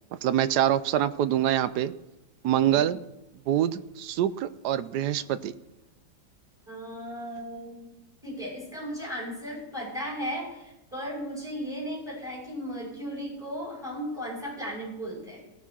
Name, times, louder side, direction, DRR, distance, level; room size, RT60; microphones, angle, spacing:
voice 1, 0.1-1.9 2.4-3.0 3.5-5.5, right 11 dB, 75° right, 15 dB, 1.1 m, -25 dB
voice 2, 6.7-8.0 8.2-15.4, equal, 5° right, -5 dB, 4.9 m, -36 dB
17.0 x 6.4 x 6.0 m, 0.97 s
omnidirectional pair, 2.0 m